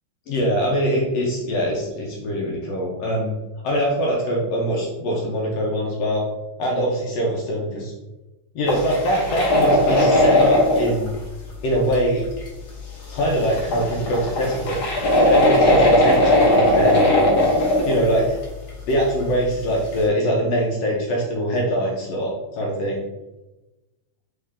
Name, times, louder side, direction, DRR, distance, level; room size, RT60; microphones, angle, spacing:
voice 1, 0.3-3.3 3.6-6.2 6.6-7.9 8.5-11.1 11.6-12.2 13.1-14.8 15.3-17.3 17.9-18.4 18.9-23.0, equal, 75° left, -2 dB, 1.6 m, -23 dB
sound 1, 8.7-11.1 11.9-12.0 12.4-12.5 13.1-13.2 13.4-18.2 18.4-18.7 19.2-19.3 19.9-20.0, left 1 dB, 90° left, 0.8 m, -18 dB
4.4 x 3.3 x 3.5 m, 1.1 s
omnidirectional pair, 3.4 m